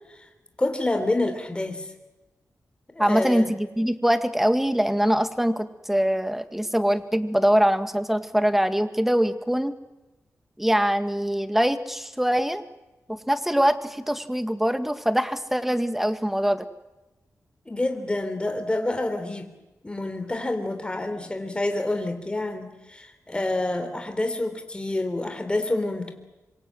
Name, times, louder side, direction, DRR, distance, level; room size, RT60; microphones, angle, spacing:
voice 1, 0.6-1.9 2.9-3.5 17.7-19.5 19.8-26.1, left 2 dB, 20° left, 6 dB, 3.4 m, -27 dB
voice 2, 3.0-9.8 10.6-12.6 13.1-16.7, equal, 5° right, 10 dB, 1.8 m, -23 dB
26.0 x 24.5 x 7.6 m, 1.1 s
wide cardioid pair, 105°, 6 cm